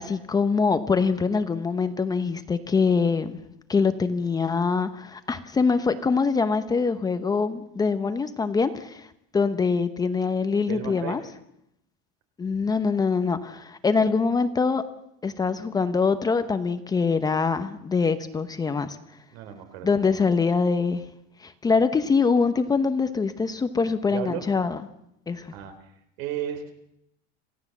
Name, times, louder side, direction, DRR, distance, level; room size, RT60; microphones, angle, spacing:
voice 1, 0.0-3.4 3.7-9.1 9.3-11.2 12.4-14.8 15.2-19.0 19.8-21.0 21.4-24.8 25.3-25.5, left 5 dB, 15° left, 10 dB, 0.8 m, -24 dB
voice 2, 10.7-11.2 19.3-20.0 24.1-24.4 25.5-26.7, right 10 dB, 75° right, 7 dB, 4.0 m, -34 dB
27.5 x 16.5 x 7.3 m, 0.79 s
cardioid pair, 175°, 29 cm